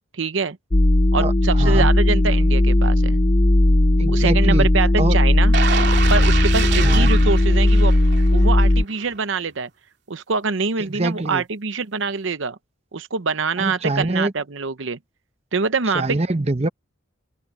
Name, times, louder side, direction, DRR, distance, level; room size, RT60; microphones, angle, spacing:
voice 1, 0.1-0.6 1.1-3.2 4.1-5.5 6.1-7.9 8.3-9.7 10.1-12.6 12.9-15.0 15.5-16.2, right 4 dB, 70° right, 0.8 m, -24 dB
sound 1, 0.7-8.8, left 1 dB, 25° left, 0.8 m, -16 dB
voice 2, 1.6-1.9 4.0-4.7 5.0-5.2 6.8-7.1 10.9-11.4 13.6-14.3 15.9-16.7, right 2 dB, 30° right, 0.9 m, -24 dB
sound 2, 5.5-8.5 8.9-9.0, right 4 dB, 55° right, 3.3 m, -25 dB
open air
head